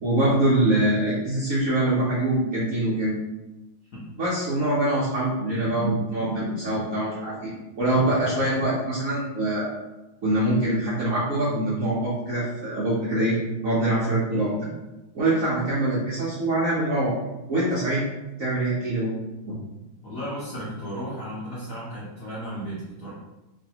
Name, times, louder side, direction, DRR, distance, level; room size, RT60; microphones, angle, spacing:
voice 1, 0.0-3.1 4.2-7.5 7.8-9.7 10.2-13.4 13.6-14.5 15.1-17.1 17.5-18.0 18.4-19.1 19.5-19.6, right 1 dB, 75° right, -8 dB, 0.7 m, -24 dB
voice 2, 14.3-14.7 20.0-23.1, equal, 60° left, -8 dB, 1.0 m, -35 dB
3.1 x 2.6 x 2.8 m, 1.0 s
omnidirectional pair, 2.3 m